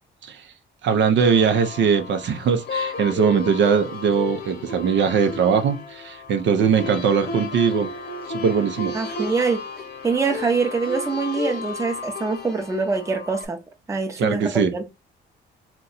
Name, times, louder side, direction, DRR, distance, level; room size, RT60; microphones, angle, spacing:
voice 1, 0.8-7.9 8.3-8.9 14.2-14.7, right 6 dB, 65° right, 0.6 m, -21 dB
sound 1, 1.2-13.5, left 3 dB, 55° left, 1.0 m, -33 dB
voice 2, 8.9-9.6 10.0-13.6 13.9-14.8, right 4 dB, 15° right, 0.7 m, -24 dB
2.7 x 2.2 x 3.9 m
cardioid pair, 90°, 20 cm